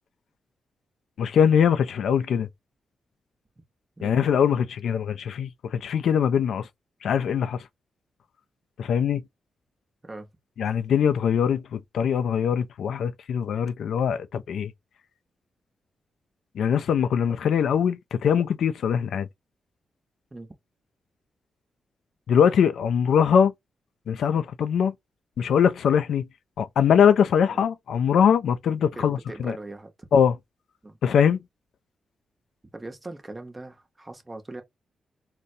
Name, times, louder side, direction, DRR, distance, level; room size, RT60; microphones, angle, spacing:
voice 1, 1.2-2.5 4.0-6.7 7.0-7.6 8.8-9.2 10.6-14.7 16.6-19.3 22.3-23.5 24.1-24.9 25.4-26.3 26.6-29.6 30.1-30.3 31.0-31.4, left 7 dB, 80° left, 0.4 m, -22 dB
voice 2, 4.0-4.3 10.0-10.3 20.3-20.5 27.5-27.6 29.0-29.9 30.8-31.0 32.7-34.6, right 2 dB, 20° right, 0.9 m, -40 dB
3.9 x 2.2 x 2.6 m
cardioid pair, 75°, 0 cm